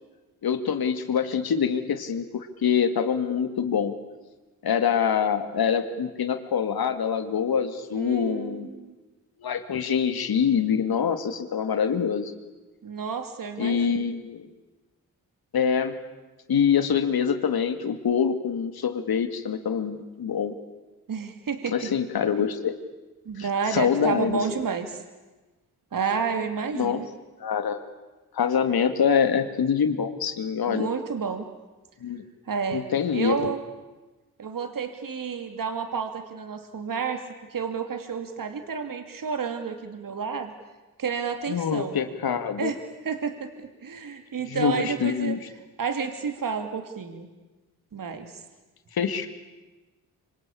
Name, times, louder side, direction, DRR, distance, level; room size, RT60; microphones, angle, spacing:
voice 1, 0.4-3.9 4.6-8.7 9.4-12.3 13.6-14.5 15.5-16.0 16.5-20.5 21.7-22.7 23.4-24.4 26.7-27.0 27.4-27.8 28.3-30.9 32.0-32.2 32.7-33.5 41.5-42.7 44.5-45.4 48.9-49.3, left 7 dB, 75° left, 9 dB, 2.5 m, -25 dB
voice 2, 7.9-9.0 12.8-14.1 21.1-21.8 23.2-25.0 25.9-27.1 30.7-31.4 32.5-33.6 34.4-37.2 37.5-40.5 41.0-42.0 42.6-42.8 43.0-45.4 45.8-47.3 47.9-48.3, right 6 dB, 60° right, 7 dB, 2.9 m, -30 dB
26.0 x 25.5 x 8.7 m, 1.2 s
cardioid pair, 60°, 37 cm